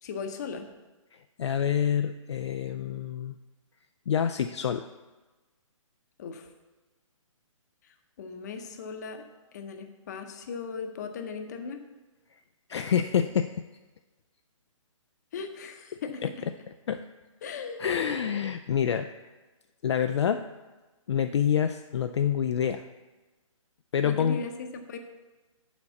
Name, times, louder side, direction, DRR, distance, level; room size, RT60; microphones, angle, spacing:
voice 1, 0.0-0.7 6.2-6.5 7.8-9.2 9.5-11.8 15.3-16.2 17.4-17.8 24.0-25.0, left 5 dB, 30° left, 6 dB, 0.8 m, -38 dB
voice 2, 1.1-3.4 4.1-4.9 12.7-13.6 16.2-16.3 16.9-17.0 17.8-19.1 19.8-20.5 21.1-22.8 23.9-24.4, left 8 dB, 55° left, 8 dB, 0.4 m, -27 dB
7.1 x 5.2 x 7.0 m, 1.2 s
hypercardioid pair, 165°, 17 cm